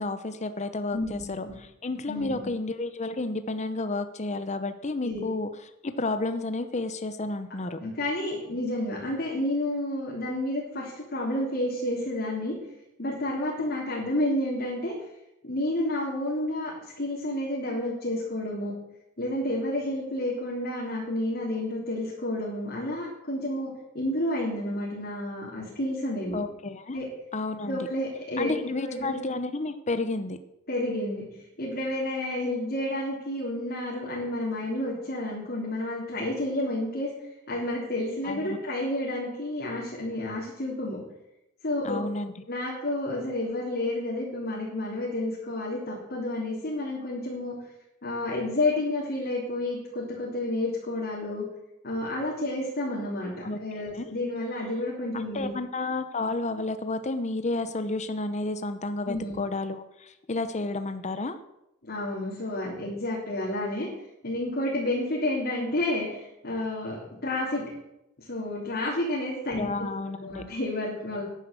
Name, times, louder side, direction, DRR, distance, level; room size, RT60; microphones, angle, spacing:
voice 1, 0.0-1.5 1.8-5.5 5.8-7.8 26.3-27.0 27.3-27.9 28.4-30.4 38.2-38.6 41.8-42.3 53.4-53.6 53.9-54.1 55.1-61.4 69.5-70.4, left 2 dB, 35° left, 10 dB, 0.8 m, -31 dB
voice 2, 0.9-1.5 2.1-2.5 5.0-5.2 7.7-12.5 13.0-14.9 15.4-18.7 19.2-26.4 26.9-27.0 27.7-28.5 28.8-29.2 30.7-31.3 31.6-37.1 37.5-41.0 41.6-42.0 42.5-47.6 48.0-51.5 51.8-53.3 53.6-55.5 59.1-59.3 61.8-63.9 64.2-67.7 68.2-69.9 70.2-71.2, left 1 dB, 50° left, -6 dB, 3.8 m, -30 dB
10.5 x 10.5 x 7.6 m, 0.88 s
head